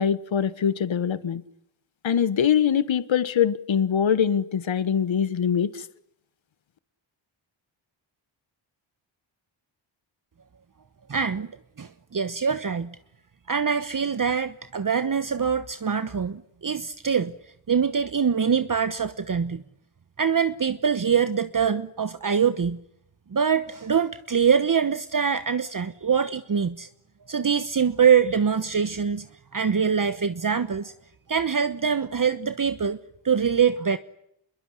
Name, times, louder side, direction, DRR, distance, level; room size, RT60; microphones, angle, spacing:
voice 1, 0.0-1.4 2.0-5.8, left 8 dB, 70° left, 1.4 m, -23 dB
voice 2, 11.1-11.5 11.8-13.0 13.5-17.3 17.7-19.6 20.2-22.8 23.3-26.9 27.3-29.3 29.5-30.9 31.3-33.0 33.2-34.0, right 6 dB, 40° right, 1.2 m, -24 dB
27.0 x 22.5 x 9.9 m
wide cardioid pair, 85°, 48 cm